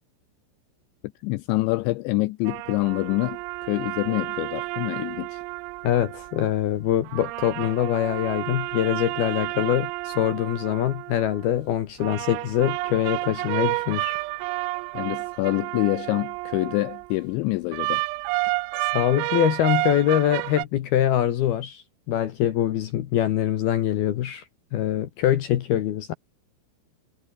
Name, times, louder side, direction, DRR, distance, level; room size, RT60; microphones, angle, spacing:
voice 1, 1.2-5.4 14.9-18.0, left 20 dB, 85° left, 2.6 m, -26 dB
sound 1, 2.5-6.5 7.1-11.5 12.0-17.1 17.7-20.7, right 24 dB, 85° right, 3.3 m, -30 dB
voice 2, 5.8-14.2 18.8-24.4 24.7-26.1, left 11 dB, 65° left, 2.6 m, -24 dB
omnidirectional pair, 5.9 m